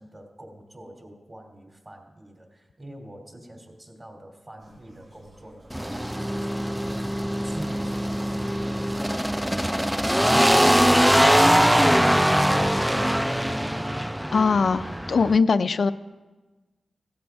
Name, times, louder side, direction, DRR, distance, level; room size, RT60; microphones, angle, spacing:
voice 1, 0.0-13.7, right 1 dB, 30° right, 2 dB, 2.7 m, -45 dB
sound 1, 4.6-13.7, right 1 dB, 65° right, 5.3 m, -54 dB
sound 2, 5.7-15.4, equal, 5° right, 0.3 m, -22 dB
voice 2, 14.3-15.9, left 4 dB, 65° left, 10 dB, 0.4 m, -21 dB
16.5 x 14.0 x 3.5 m, 1.2 s
wide cardioid pair, 90°, 0 cm